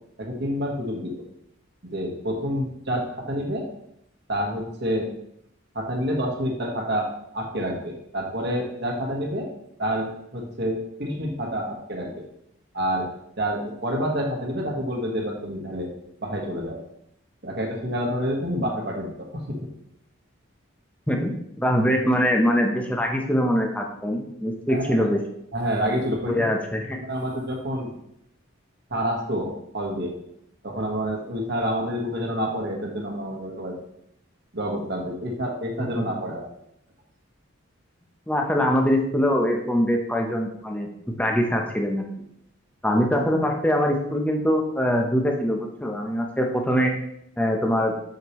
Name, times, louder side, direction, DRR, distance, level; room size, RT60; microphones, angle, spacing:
voice 1, 0.2-1.2 1.8-3.7 4.3-5.1 5.7-9.5 9.8-12.2 12.7-15.9 16.2-16.8 17.4-19.7 24.7-25.1 25.5-26.5 26.9-27.9 28.9-30.1 30.6-33.8 34.5-36.5, equal, 55° right, 0 dB, 1.5 m, -28 dB
voice 2, 21.1-25.2 26.2-27.0 35.9-36.0 38.3-40.9 41.2-42.0 42.8-46.9 47.4-47.9, equal, 5° left, 1 dB, 0.8 m, -23 dB
6.7 x 6.6 x 3.1 m, 0.75 s
head